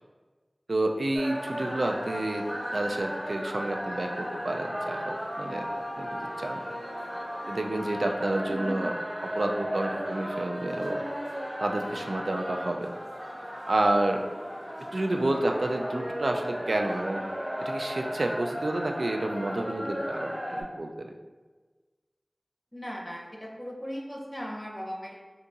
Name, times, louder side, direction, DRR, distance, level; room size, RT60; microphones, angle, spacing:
voice 1, 0.7-2.5 2.7-5.7 6.0-6.6 7.5-8.9 9.2-11.0 11.6-12.9 13.7-14.2 14.9-17.2 17.6-21.1, right 1 dB, 85° right, 3 dB, 0.3 m, -29 dB
sound 1, 1.1-20.6, equal, 30° right, 0.8 m, -35 dB
voice 2, 22.7-25.2, equal, 15° left, -1 dB, 0.6 m, -38 dB
2.7 x 2.3 x 3.9 m, 1.3 s
wide cardioid pair, 45°, 0 cm